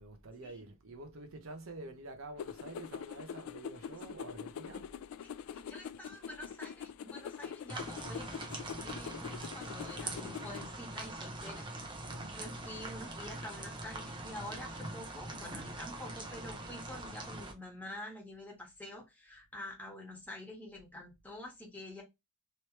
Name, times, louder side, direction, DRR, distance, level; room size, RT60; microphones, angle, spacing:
voice 1, 0.0-4.9 12.0-12.4, right 2 dB, 70° right, 0.7 m, -48 dB
sound 1, 2.4-10.7, left 8 dB, 80° left, 0.3 m, -44 dB
voice 2, 5.2-8.5 8.8-11.6 12.3-22.0, left 1 dB, 10° left, 1.3 m, -47 dB
sound 2, 7.7-17.5, right 2 dB, 25° right, 0.7 m, -43 dB
3.2 x 3.0 x 2.9 m
head